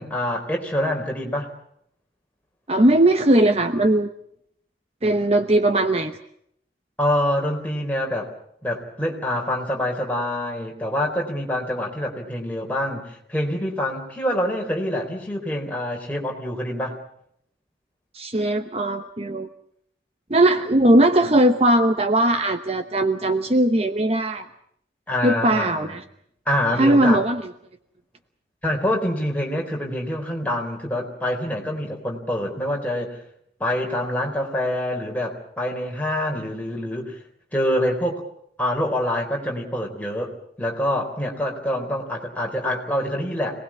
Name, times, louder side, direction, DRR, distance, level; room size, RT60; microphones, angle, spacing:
voice 1, 0.0-1.5 7.0-8.3 8.6-17.0 25.1-25.9 26.5-27.3 28.6-33.2 33.6-37.2 37.5-38.2 38.6-43.6, left 1 dB, 10° left, 0 dB, 4.0 m, -26 dB
voice 2, 2.7-4.1 5.0-6.2 18.1-19.5 20.3-24.5 25.2-26.0 26.8-27.4, right 1 dB, 35° right, 8 dB, 0.9 m, -19 dB
26.5 x 19.5 x 7.3 m, 0.69 s
head